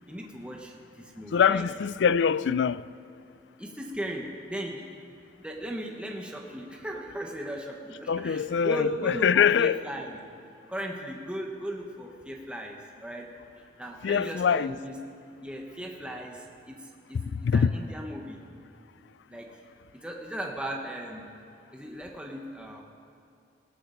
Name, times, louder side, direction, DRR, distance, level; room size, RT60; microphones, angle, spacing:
voice 1, 0.1-1.7 3.6-10.2 10.7-13.3 13.8-15.2 15.4-18.4 19.3-19.6 19.9-21.3 21.7-22.8, right 1 dB, 5° right, 1.1 m, -37 dB
voice 2, 1.3-2.9 8.1-9.8 14.0-14.7 17.3-17.8, left 7 dB, 70° left, 0.3 m, -24 dB
20.0 x 16.0 x 3.9 m
head